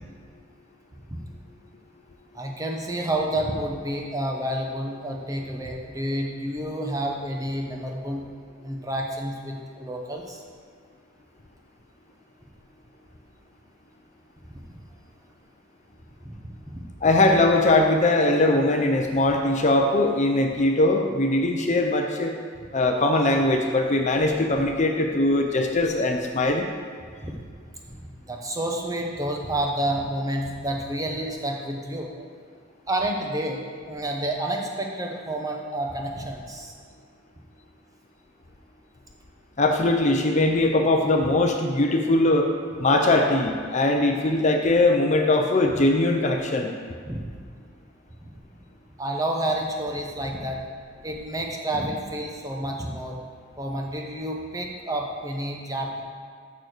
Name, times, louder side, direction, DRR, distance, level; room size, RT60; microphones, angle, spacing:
voice 1, 2.3-8.2 8.6-10.4 14.5-14.6 16.2-16.8 27.2-27.3 27.9-32.3 32.9-36.7 47.1-47.3 48.2-48.3 49.0-50.6 51.0-53.2 53.6-56.0, right 1 dB, 15° right, 0 dB, 0.9 m, -29 dB
voice 2, 17.0-22.3 22.7-26.7 39.6-42.5 42.8-46.7, left 2 dB, 35° left, 3 dB, 0.6 m, -21 dB
6.7 x 6.3 x 6.6 m, 2.1 s
head